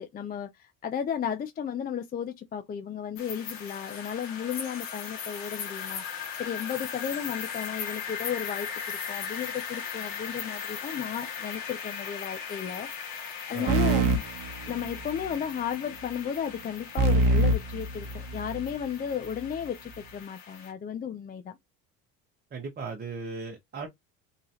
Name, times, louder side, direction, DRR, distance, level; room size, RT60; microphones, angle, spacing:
voice 1, 0.0-6.0 6.4-12.9 13.5-14.2 14.7-21.6, left 8 dB, 25° left, 0.5 m, -34 dB
sound 1, 3.2-20.7, left 7 dB, 60° left, 1.7 m, -38 dB
voice 2, 13.5-13.8 22.5-23.9, right 4 dB, 25° right, 1.1 m, -37 dB
sound 2, 13.7-15.3 17.0-18.7, right 2 dB, 55° right, 0.9 m, -25 dB
3.9 x 3.0 x 2.8 m
cardioid pair, 130°, 38 cm